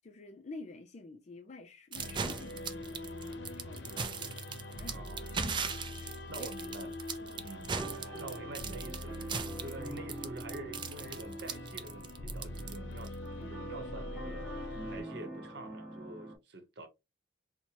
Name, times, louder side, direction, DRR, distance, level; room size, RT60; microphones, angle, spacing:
voice 1, 0.0-5.0 6.0-6.5 6.8-6.9, left 2 dB, 40° left, 0.4 m, -50 dB
sound 1, 1.9-15.0, left 1 dB, 70° left, 0.7 m, -43 dB
sound 2, 1.9-13.1, right 5 dB, 25° right, 0.4 m, -38 dB
voice 2, 4.8-5.3 6.3-6.9 7.4-7.7 8.2-9.2 9.6-16.9, right 2 dB, 60° right, 0.9 m, -47 dB
sound 3, 7.7-16.4, right 2 dB, 5° right, 1.3 m, -46 dB
4.4 x 2.1 x 2.9 m
head